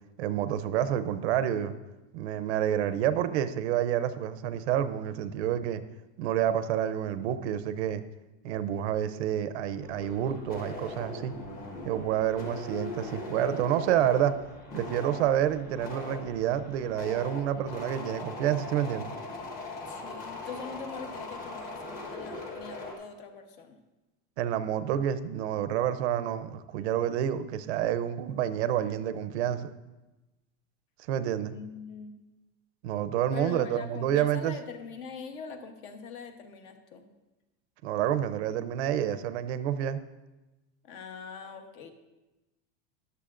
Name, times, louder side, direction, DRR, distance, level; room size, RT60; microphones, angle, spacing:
voice 1, 0.2-1.7 2.1-5.8 6.2-8.0 8.4-11.3 11.8-14.3 14.7-19.1 24.4-29.7 31.1-31.5 32.8-34.6 37.8-40.0, right 10 dB, 65° right, 12 dB, 0.7 m, -28 dB
sound 1, 9.8-22.9, left 2 dB, 25° left, 1.2 m, -40 dB
voice 2, 19.9-23.8 31.5-32.2 33.3-37.0 40.8-41.9, left 5 dB, 45° left, 7 dB, 1.0 m, -43 dB
13.5 x 11.0 x 2.5 m, 1.1 s
supercardioid pair, 180°, 35 cm